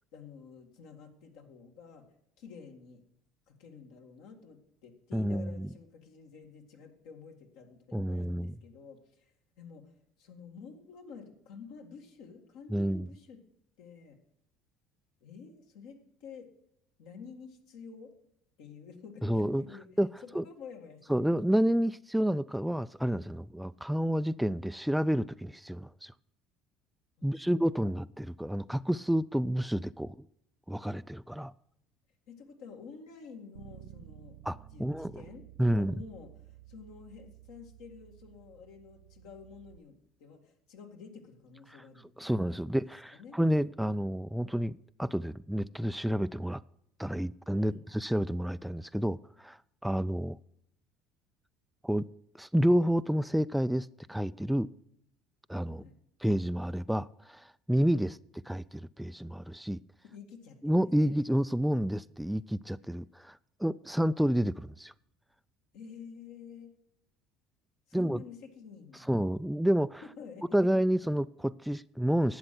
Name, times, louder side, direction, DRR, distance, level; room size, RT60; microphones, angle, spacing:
voice 1, 0.1-2.0 2.4-3.0 3.5-9.9 10.2-13.4 13.8-14.2 15.2-16.5 17.0-18.1 18.6-19.9 20.3-21.3 27.2-27.9 32.3-34.4 34.7-39.9 40.2-42.6 43.1-43.4 47.6-47.8 55.7-55.9 60.0-61.1 65.7-66.7 67.9-69.1 70.0-70.6, left 6 dB, 75° left, 2.0 m, -50 dB
voice 2, 5.1-5.7 7.9-8.5 12.7-13.1 19.2-19.6 20.0-20.1 20.3-20.4 21.1-26.1 27.2-30.2 30.7-31.5 34.5-35.2 35.6-35.9 41.7-41.8 42.2-46.6 47.0-49.6 49.8-50.4 51.8-52.1 52.3-54.7 55.5-55.8 56.2-58.2 58.5-59.8 60.6-64.9 67.9-68.2 69.1-70.0 70.5-72.4, equal, 5° right, 0.3 m, -29 dB
Bass guitar, 33.5-39.8, right 13 dB, 90° right, 0.8 m, -53 dB
11.5 x 7.9 x 6.0 m
supercardioid pair, 80°, 0 cm